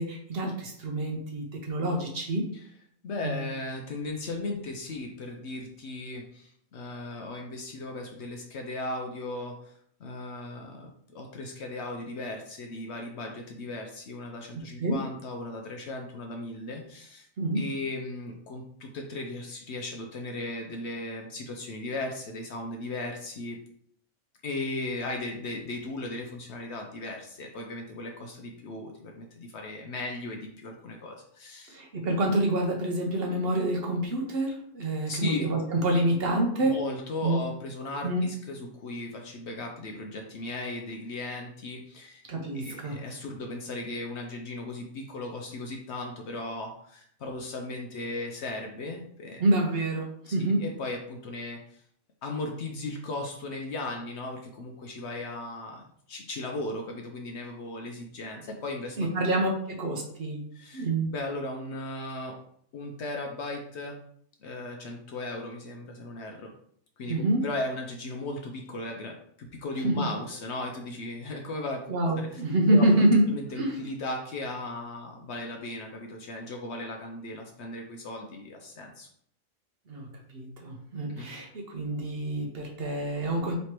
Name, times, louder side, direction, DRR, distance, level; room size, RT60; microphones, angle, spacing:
voice 1, 0.0-2.4 3.2-3.4 14.8-15.0 17.4-17.6 31.7-36.8 37.2-37.4 38.0-38.3 42.3-43.0 49.4-50.6 59.0-60.4 60.7-61.1 67.1-67.4 69.8-70.1 71.9-73.2 73.6-73.8 79.9-83.6, right 1 dB, 55° right, 1 dB, 0.9 m, -27 dB
voice 2, 3.0-9.7 10.0-17.3 17.5-23.6 24.4-31.8 35.1-35.5 36.6-42.2 42.5-49.4 50.3-51.8 52.2-55.8 56.1-59.1 60.5-60.9 61.1-62.4 62.7-64.0 64.4-66.5 67.0-67.1 67.4-71.8 72.2-72.4 72.7-72.8 73.3-79.1 81.1-81.3, left 2 dB, 65° left, 2 dB, 0.8 m, -36 dB
3.3 x 3.1 x 4.3 m, 0.65 s
omnidirectional pair, 1.3 m